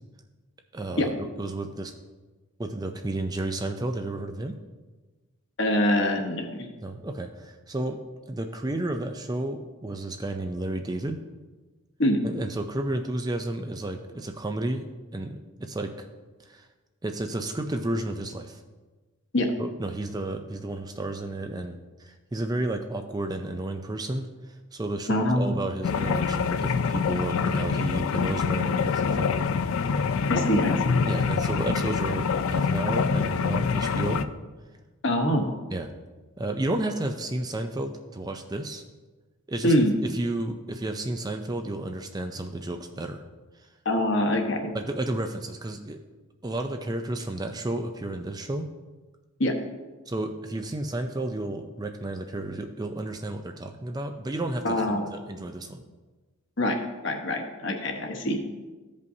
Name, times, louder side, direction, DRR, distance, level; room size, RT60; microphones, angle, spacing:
voice 1, 0.7-1.9 2.6-4.6 6.8-8.0 8.3-11.2 12.2-14.8 15.1-16.1 16.4-16.7 17.0-18.6 19.6-29.5 29.9-30.6 31.0-34.2 35.7-35.9 36.4-38.8 39.5-39.7 40.0-43.2 43.6-43.7 44.7-46.0 46.4-48.7 50.1-55.8, right 1 dB, 20° right, 6 dB, 0.4 m, -32 dB
voice 2, 5.6-6.7 12.0-12.2 19.3-19.5 25.1-25.6 30.3-31.0 35.0-35.5 39.6-40.0 43.8-44.7 49.4-49.5 54.6-55.1 56.6-58.4, left 1 dB, 55° left, 3 dB, 1.1 m, -24 dB
sound 1, 25.8-34.3, left 5 dB, 70° left, 0.4 m, -25 dB
14.5 x 5.3 x 2.7 m, 1.3 s
head